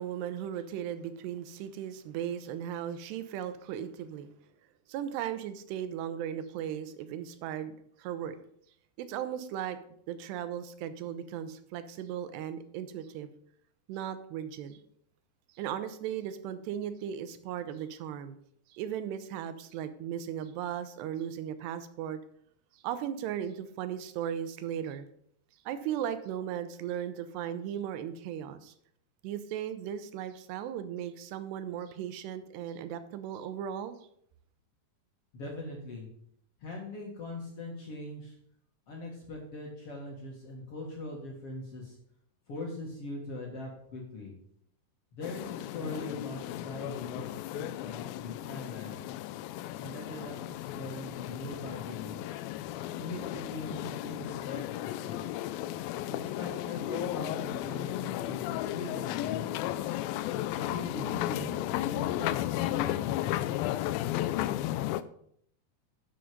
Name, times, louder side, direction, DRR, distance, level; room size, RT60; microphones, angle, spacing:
voice 1, 0.0-4.3 4.9-7.7 8.0-8.4 9.0-9.8 10.1-13.3 13.9-14.8 15.6-18.4 18.7-22.2 22.7-25.0 25.7-28.7 29.2-34.0, right 9 dB, 85° right, 11 dB, 2.9 m, -37 dB
voice 2, 35.3-36.1 36.6-38.4 38.9-42.0 42.5-44.3 45.1-49.1 49.8-52.4 53.0-55.2 56.1-59.7 60.5-63.5, left 2 dB, 50° left, -1 dB, 2.0 m, -41 dB
sound 1, 45.2-65.0, left 14 dB, 90° left, 2.1 m, -34 dB
11.5 x 6.5 x 5.1 m, 0.69 s
omnidirectional pair, 4.7 m